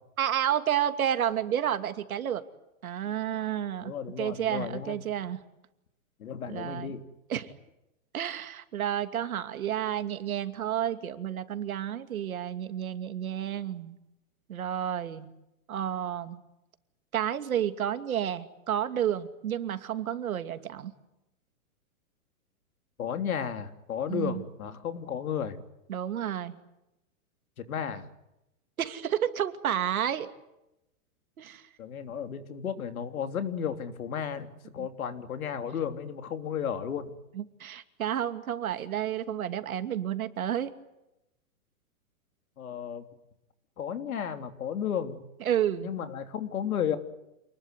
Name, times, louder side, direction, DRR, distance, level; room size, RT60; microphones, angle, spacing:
voice 1, 0.2-2.4 2.8-3.9 4.2-5.4 6.5-6.9 7.3-7.5 8.1-14.0 14.5-15.3 15.7-16.4 17.1-20.9 24.1-24.4 25.9-26.6 28.8-30.3 31.4-31.7 34.8-34.9 37.3-40.7 45.4-45.9, right 10 dB, 80° right, 9 dB, 2.7 m, -31 dB
voice 2, 3.8-5.0 6.2-7.0 23.0-25.6 27.6-28.0 31.8-37.1 42.6-43.0 43.8-45.3 45.8-47.0, left 8 dB, 75° left, 7 dB, 3.4 m, -33 dB
28.5 x 20.5 x 9.5 m, 0.90 s
hypercardioid pair, 170°, 42 cm